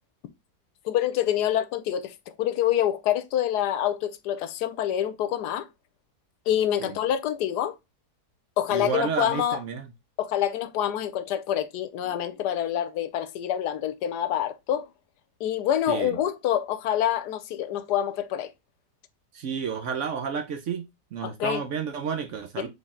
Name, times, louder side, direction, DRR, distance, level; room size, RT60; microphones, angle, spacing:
voice 1, 0.8-5.7 6.5-7.7 8.6-9.6 10.2-14.9 15.4-18.5 21.2-21.6 22.6-22.7, left 11 dB, 90° left, 1.2 m, -26 dB
voice 2, 8.7-9.9 15.9-16.2 19.3-22.7, right 6 dB, 60° right, 0.8 m, -31 dB
4.2 x 3.4 x 3.6 m
omnidirectional pair, 1.7 m